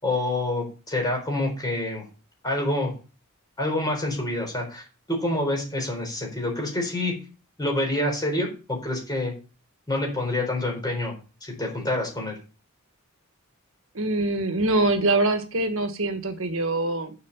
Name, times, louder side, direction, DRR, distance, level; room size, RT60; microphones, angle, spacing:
voice 1, 0.0-2.0 2.4-2.9 3.6-7.1 7.6-9.3 9.9-11.2 11.4-12.4, left 1 dB, 20° left, 1 dB, 4.0 m, -27 dB
voice 2, 13.9-17.1, right 2 dB, 65° right, 7 dB, 1.4 m, -24 dB
7.4 x 6.2 x 7.2 m, 0.34 s
head